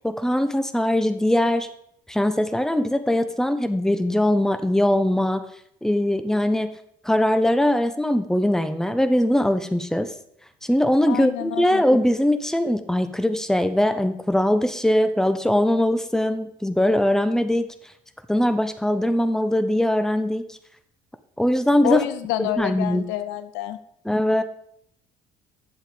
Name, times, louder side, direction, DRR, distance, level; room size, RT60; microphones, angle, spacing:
voice 1, 0.0-1.7 2.1-5.4 5.8-6.7 7.0-10.1 10.6-17.7 18.3-20.5 21.4-22.0 22.4-23.0 24.0-24.4, left 1 dB, 5° left, 10 dB, 1.0 m, -21 dB
voice 2, 11.1-11.8 21.8-23.8, left 14 dB, 70° left, 13 dB, 0.7 m, -27 dB
10.5 x 7.3 x 5.2 m, 0.71 s
hypercardioid pair, 50°, 20 cm